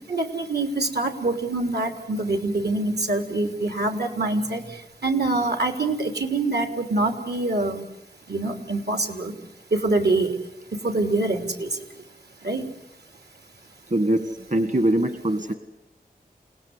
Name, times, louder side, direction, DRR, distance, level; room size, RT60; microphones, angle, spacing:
voice 1, 0.1-4.6 5.0-7.8 8.3-9.3 9.7-10.3 10.8-11.7 12.4-12.6, right 2 dB, 85° right, 6 dB, 3.3 m, -25 dB
voice 2, 13.9-15.5, right 1 dB, 50° right, 9 dB, 1.6 m, -23 dB
29.0 x 18.5 x 9.6 m, 0.86 s
wide cardioid pair, 65°, 16 cm